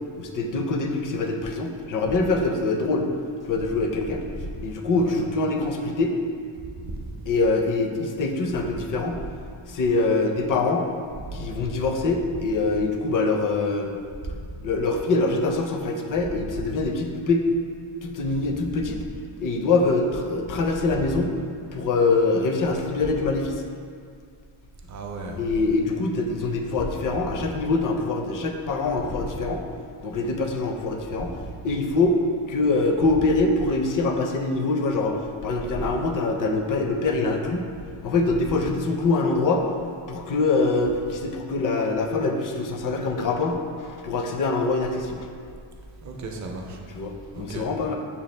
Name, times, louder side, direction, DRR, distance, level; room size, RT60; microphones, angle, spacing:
voice 1, 0.2-3.1 3.4-4.2 4.6-6.1 7.3-9.2 9.7-10.9 11.3-14.0 14.6-17.5 18.0-19.0 19.4-21.3 21.7-23.6 25.4-29.6 30.0-31.3 31.6-32.2 32.5-37.6 38.0-39.6 40.1-45.3 46.9-48.0, left 3 dB, 45° left, 3 dB, 0.5 m, -24 dB
voice 2, 24.9-25.4 27.0-27.1 35.7-35.9 46.0-46.8 47.3-47.7, right 2 dB, 40° right, 1 dB, 0.5 m, -35 dB
6.9 x 2.3 x 3.2 m, 2.2 s
cardioid pair, 120°, 48 cm